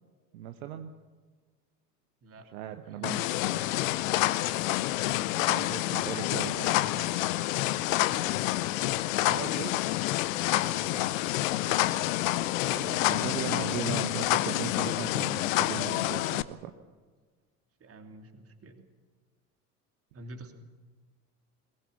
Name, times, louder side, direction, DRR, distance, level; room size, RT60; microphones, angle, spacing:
voice 1, 0.3-1.0 2.5-3.2 5.4-6.7 9.2-9.8 12.6-16.7, right 11 dB, 60° right, 7 dB, 1.3 m, -38 dB
voice 2, 2.8-3.8 6.0-7.2 7.5-8.3 10.7-12.0 13.2-13.3 17.8-18.8 20.1-20.5, right 2 dB, 30° right, 5 dB, 3.0 m, -49 dB
sound 1, 3.0-16.4, left 16 dB, 55° left, 0.9 m, -28 dB
22.0 x 20.0 x 7.2 m, 1.4 s
figure-of-eight pair, 70°, 47 cm